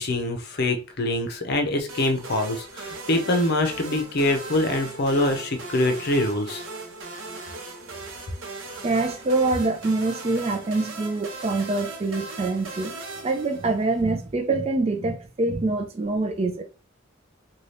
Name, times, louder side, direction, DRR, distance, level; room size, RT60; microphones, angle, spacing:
voice 1, 0.0-6.6, left 1 dB, 55° left, 0.6 m, -24 dB
sound 1, 1.9-14.1, right 3 dB, 80° right, 0.7 m, -38 dB
voice 2, 8.8-13.0 13.2-16.6, right 3 dB, 30° right, 0.4 m, -25 dB
2.6 x 2.3 x 3.2 m
head